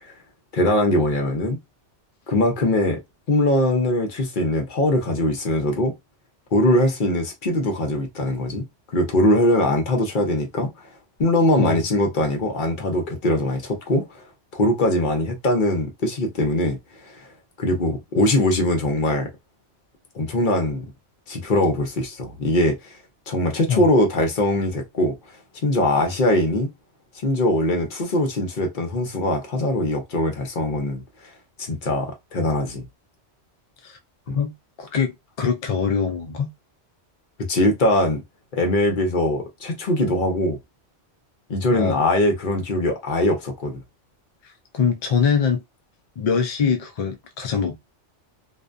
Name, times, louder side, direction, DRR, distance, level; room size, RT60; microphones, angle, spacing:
voice 1, 0.5-1.6 2.3-3.0 3.3-5.9 6.5-8.6 8.9-10.7 11.2-14.2 14.5-16.8 17.0-17.3 17.6-19.3 20.1-20.9 21.3-22.8 23.3-25.1 25.6-26.7 27.2-31.0 31.6-32.9 34.3-34.4 37.5-38.2 38.5-40.6 41.5-43.8, left 1 dB, 50° left, 0.8 m, -21 dB
voice 2, 34.8-36.5 41.7-42.1 44.4-45.6 46.2-47.8, left 6 dB, 65° left, 0.3 m, -23 dB
2.5 x 2.1 x 2.5 m
omnidirectional pair, 1.2 m